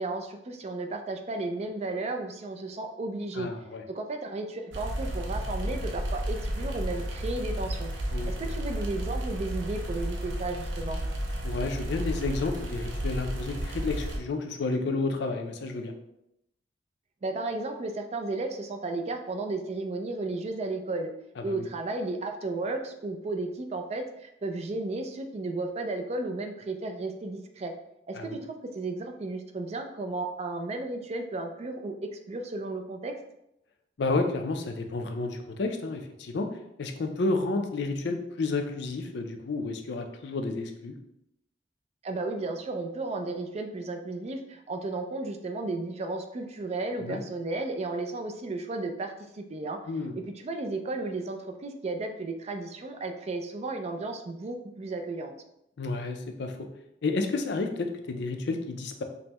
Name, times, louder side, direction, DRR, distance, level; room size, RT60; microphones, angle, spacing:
voice 1, 0.0-3.5 3.9-7.9 8.2-11.0 17.2-21.1 21.4-27.7 28.1-33.2 42.0-49.8 50.1-55.3, right 2 dB, 35° right, 5 dB, 0.4 m, -34 dB
voice 2, 3.3-3.8 8.1-8.3 11.4-15.9 21.4-21.7 28.1-28.4 34.0-36.5 36.8-41.0 47.0-47.2 49.9-50.1 55.8-56.7 57.0-59.0, left 3 dB, 65° left, 5 dB, 0.5 m, -31 dB
sound 1, 4.7-14.2, equal, 85° right, 0.6 m, -32 dB
5.2 x 2.1 x 2.9 m, 0.82 s
head